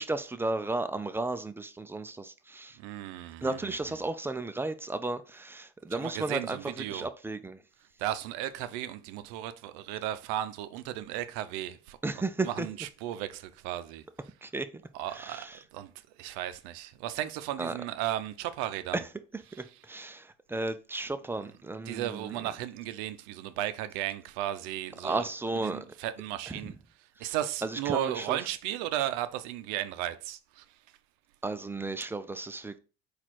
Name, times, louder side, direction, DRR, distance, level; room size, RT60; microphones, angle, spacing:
voice 1, 0.0-2.8 3.4-7.6 12.0-12.7 14.4-14.7 15.1-15.6 17.6-17.7 18.9-19.0 19.3-22.4 25.0-25.8 26.5-26.7 27.2-27.3 27.6-28.4 31.4-32.8, right 2 dB, 10° right, 0.4 m, -34 dB
voice 2, 2.8-4.0 5.9-7.1 8.0-14.0 14.9-15.9 16.2-19.1 19.5-19.8 21.9-26.7 27.2-30.6, right 13 dB, 75° right, 0.5 m, -35 dB
4.1 x 2.5 x 4.5 m
supercardioid pair, 75°, 30 cm